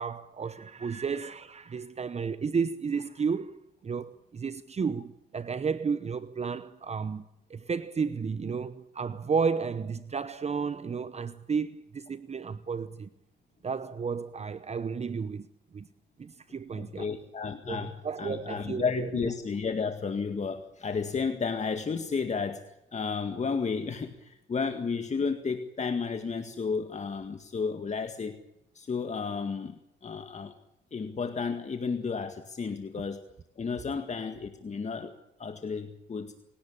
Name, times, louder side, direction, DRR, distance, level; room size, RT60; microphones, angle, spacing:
voice 1, 0.0-13.1 13.6-15.5 15.7-15.9 16.2-17.1 17.7-19.2, right 5 dB, 35° right, 0.9 m, -32 dB
voice 2, 16.7-22.6 22.9-28.4 28.7-30.5 30.9-33.3 33.6-35.1 35.4-36.3, left 5 dB, 35° left, 1.9 m, -32 dB
27.5 x 17.5 x 8.7 m
cardioid pair, 90°, 20 cm